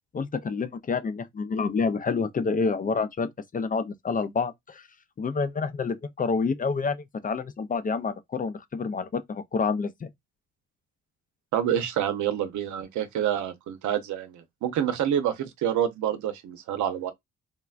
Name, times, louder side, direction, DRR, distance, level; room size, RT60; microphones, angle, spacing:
voice 1, 0.1-4.8 5.2-10.1, left 4 dB, 30° left, 0.4 m, -28 dB
voice 2, 11.5-17.1, right 10 dB, 75° right, 0.7 m, -27 dB
3.2 x 2.2 x 2.4 m
cardioid pair, 90°, 30 cm